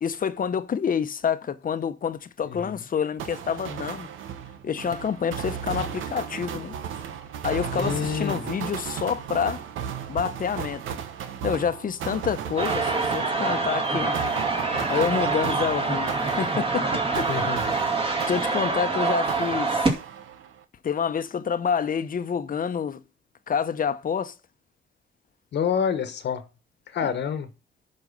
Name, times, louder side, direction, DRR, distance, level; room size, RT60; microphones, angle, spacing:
voice 1, 0.0-4.1 4.6-6.7 7.4-9.6 10.1-10.8 11.4-14.2 14.9-17.3 18.3-19.9 20.8-23.0 23.5-24.3, left 7 dB, 45° left, 1.0 m, -28 dB
sound 1, 3.2-18.9 19.3-20.6, right 8 dB, 80° right, 1.3 m, -35 dB
voice 2, 7.7-8.4 17.3-17.6 25.5-26.4 26.9-27.5, left 7 dB, 60° left, 1.3 m, -27 dB
sound 2, 12.6-19.9, right 3 dB, 25° right, 2.2 m, -25 dB
11.0 x 5.4 x 5.3 m
cardioid pair, 90°, 20 cm